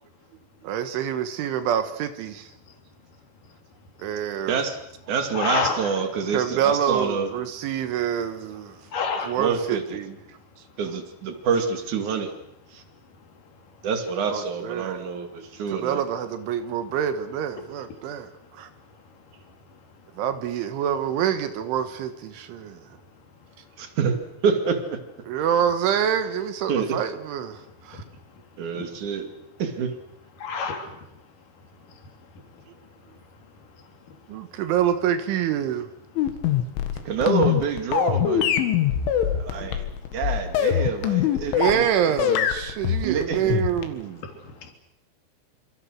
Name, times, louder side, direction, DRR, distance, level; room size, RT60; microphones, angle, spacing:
voice 1, 0.6-2.5 4.0-4.6 6.3-8.8 9.2-10.2 14.3-15.0 15.7-18.7 20.2-22.8 25.3-28.0 34.3-35.9 39.6-39.8 41.5-44.2, right 9 dB, 75° right, 9 dB, 3.6 m, -26 dB
voice 2, 4.5-4.8 5.1-7.3 9.4-10.0 10.8-12.3 12.7-12.8 13.8-16.0 23.8-24.2 24.4-25.0 26.7-26.9 28.6-29.3 29.6-29.9 37.0-38.6 39.2-39.9 40.1-41.9 42.2-42.3 43.0-43.6, right 6 dB, 45° right, 6 dB, 3.0 m, -27 dB
voice 3, 5.3-5.9 8.9-9.4 19.5-19.6 27.9-28.0 28.7-28.8 30.4-31.0 31.9-32.1 36.9-37.1 39.7-40.1 43.0-43.1 44.3-44.7, left 5 dB, 45° left, 3 dB, 4.6 m, -30 dB
sound 1, 36.2-41.9 42.2-44.0, left 10 dB, 70° left, 4.0 m, -23 dB
27.0 x 26.5 x 6.4 m, 0.84 s
omnidirectional pair, 5.9 m